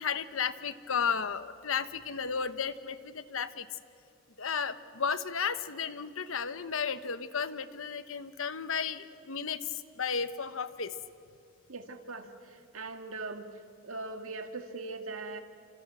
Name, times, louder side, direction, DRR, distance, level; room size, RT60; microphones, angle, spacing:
voice 1, 0.0-3.7 4.4-10.9, left 6 dB, 65° left, 12 dB, 1.0 m, -33 dB
voice 2, 11.7-13.5 13.8-15.4, right 3 dB, 75° right, 6 dB, 2.0 m, -40 dB
29.5 x 26.0 x 7.8 m, 2.4 s
head